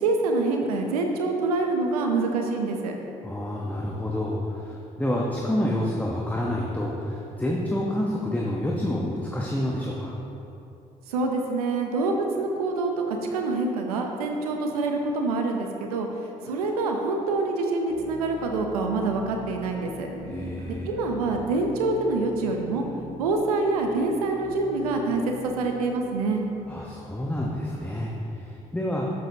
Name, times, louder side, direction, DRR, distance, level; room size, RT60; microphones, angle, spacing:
voice 1, 0.0-2.9 11.1-16.1 16.4-20.1 20.9-22.8 23.2-26.4, right 3 dB, 90° right, 3 dB, 0.8 m, -26 dB
voice 2, 3.2-10.1 20.2-20.9 26.7-28.1 28.4-29.1, left 1 dB, 10° left, -3 dB, 1.2 m, -28 dB
sound 1, 17.9-27.8, equal, 70° right, 2.0 m, -44 dB
12.0 x 7.5 x 2.9 m, 2.8 s
hypercardioid pair, 45°, 19 cm